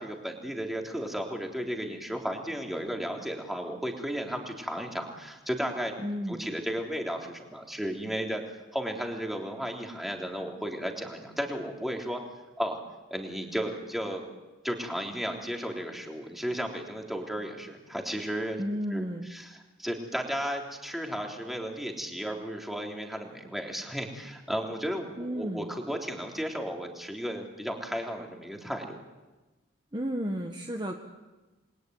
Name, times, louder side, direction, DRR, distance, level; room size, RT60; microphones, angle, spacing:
voice 1, 0.0-5.9 6.3-8.4 8.7-12.2 12.6-12.8 13.1-14.2 14.6-18.6 18.9-19.0 19.3-29.0, equal, ahead, 1 dB, 3.3 m, -34 dB
voice 2, 6.0-6.4 18.6-19.3 25.2-25.7 29.9-31.0, equal, 25° right, 3 dB, 1.5 m, -33 dB
29.0 x 22.0 x 9.4 m, 1.2 s
head